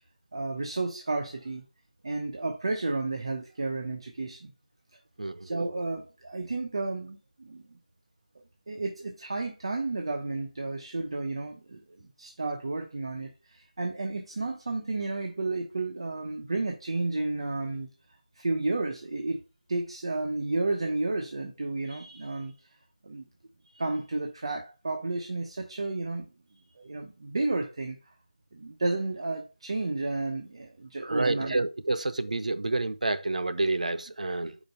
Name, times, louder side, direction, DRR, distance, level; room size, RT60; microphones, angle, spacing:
voice 1, 0.3-1.6 2.0-4.5 5.4-7.6 8.7-17.9 18.4-19.4 19.7-22.5 23.0-23.3 23.6-26.2 26.8-28.0 28.5-31.5, right 2 dB, 45° right, 0.9 m, -32 dB
voice 2, 5.2-5.5 31.0-34.6, right 2 dB, 90° right, 0.6 m, -29 dB
5.1 x 5.1 x 5.3 m
figure-of-eight pair, 175°, 4 cm